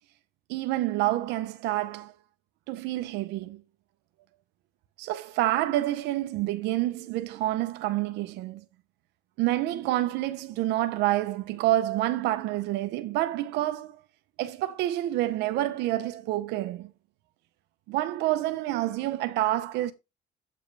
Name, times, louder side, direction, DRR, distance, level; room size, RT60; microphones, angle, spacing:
voice 1, 0.5-2.1 2.7-3.6 5.0-8.6 9.4-14.0 14.4-16.9 17.9-19.9, right 15 dB, 90° right, 0.8 m, -28 dB
8.1 x 5.1 x 3.3 m
cardioid pair, 110°, 17 cm